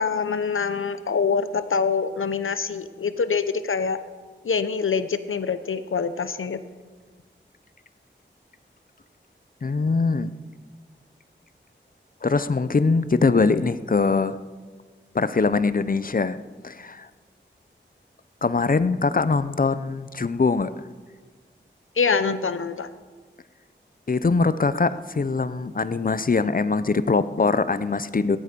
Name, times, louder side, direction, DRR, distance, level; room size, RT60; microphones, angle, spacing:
voice 1, 0.0-4.0 4.4-6.6 22.0-22.9, left 5 dB, 85° left, 12 dB, 0.8 m, -25 dB
voice 2, 9.6-10.3 12.2-14.4 15.1-16.4 16.6-17.1 18.4-20.7 24.1-28.4, left 4 dB, 45° left, 14 dB, 0.6 m, -22 dB
17.0 x 13.5 x 5.3 m, 1.5 s
wide cardioid pair, 65°, 20 cm